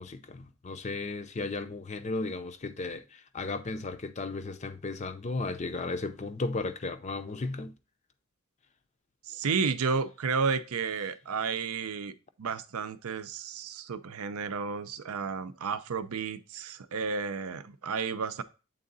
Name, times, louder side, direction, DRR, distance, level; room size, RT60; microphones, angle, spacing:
voice 1, 0.0-7.7, left 3 dB, 30° left, 0.5 m, -35 dB
voice 2, 9.3-18.4, right 5 dB, 85° right, 0.6 m, -32 dB
7.9 x 3.7 x 3.9 m
head